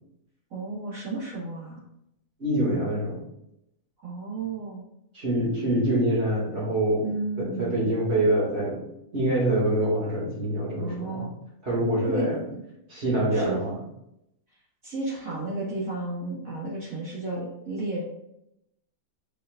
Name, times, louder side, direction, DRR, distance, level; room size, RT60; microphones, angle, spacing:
voice 1, 0.5-1.8 4.0-4.8 7.0-7.9 10.8-11.4 12.1-12.6 13.3-13.6 14.8-18.0, right 2 dB, 65° right, -8 dB, 2.5 m, -33 dB
voice 2, 2.4-3.2 5.1-7.1 7.4-8.8 9.1-11.3 11.6-12.4 12.9-13.8, right 1 dB, 45° right, -6 dB, 2.6 m, -25 dB
8.2 x 5.0 x 2.5 m, 0.82 s
omnidirectional pair, 1.6 m